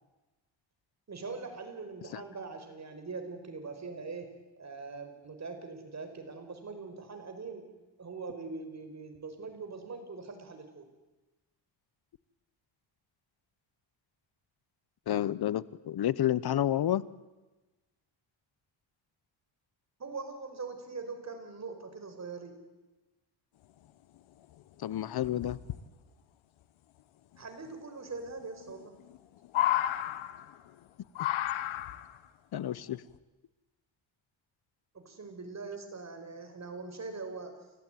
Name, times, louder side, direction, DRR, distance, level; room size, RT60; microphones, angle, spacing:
voice 1, 1.1-4.3 4.6-7.6 8.0-10.8 20.0-22.6 27.4-28.9 34.9-37.6, right 4 dB, 35° right, 6 dB, 5.1 m, -42 dB
voice 2, 15.1-17.0 24.8-25.6 32.5-33.0, left 12 dB, 50° left, 20 dB, 1.0 m, -30 dB
sound 1, 24.2-24.3 24.5-24.6 25.2-25.8 27.3-27.4 28.7-29.2 29.4-30.7 31.1-32.2 33.1-33.2, left 13 dB, 75° left, 1.3 m, -32 dB
29.5 x 15.0 x 9.3 m, 1.1 s
cardioid pair, 95°, 47 cm